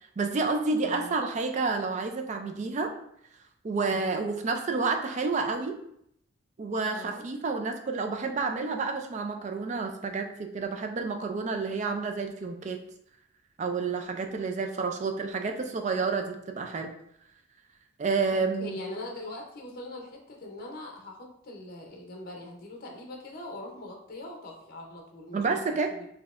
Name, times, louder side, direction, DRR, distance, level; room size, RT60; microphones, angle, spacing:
voice 1, 0.2-2.9 3.6-5.8 6.6-12.8 13.6-16.9 18.0-18.8 25.3-25.9, right 4 dB, 35° right, 5 dB, 0.3 m, -29 dB
voice 2, 0.8-1.2 3.8-4.1 6.9-7.2 18.3-25.4 26.0-26.1, left 1 dB, 45° left, 1 dB, 0.6 m, -42 dB
3.9 x 2.7 x 2.4 m, 0.72 s
head